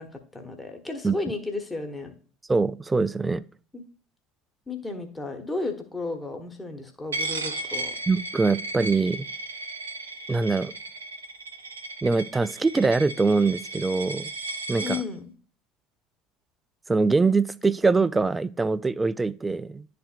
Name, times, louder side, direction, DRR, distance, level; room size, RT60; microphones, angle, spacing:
voice 1, 0.0-2.1 3.7-3.8 4.7-8.0 14.8-15.3, left 3 dB, 10° left, 1.2 m, -33 dB
voice 2, 2.5-3.4 8.1-9.3 10.3-10.7 12.0-14.3 14.7-15.0 16.9-19.9, right 4 dB, 15° right, 0.3 m, -23 dB
Coin (dropping), 7.1-15.0, right 2 dB, 80° right, 0.7 m, -35 dB
11.0 x 4.2 x 2.4 m
figure-of-eight pair, 65°, 0 cm